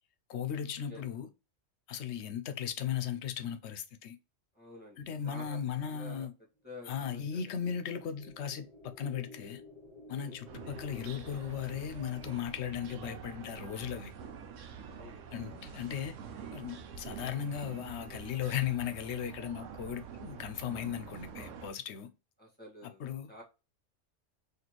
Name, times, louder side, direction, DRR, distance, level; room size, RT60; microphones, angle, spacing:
voice 1, 0.3-1.3 1.9-4.2 5.0-6.3 6.9-9.6 10.1-14.1 15.3-16.2 16.5-22.1 23.0-23.3, left 9 dB, 70° left, 0.9 m, -37 dB
voice 2, 4.5-6.3 6.6-7.5 10.1-10.4 15.0-15.2 22.4-23.4, left 1 dB, 10° left, 1.6 m, -50 dB
sound 1, 6.6-15.0, left 3 dB, 35° left, 0.8 m, -55 dB
sound 2, 10.5-21.7, right 6 dB, 85° right, 1.0 m, -47 dB
4.2 x 2.9 x 3.0 m
omnidirectional pair, 1.2 m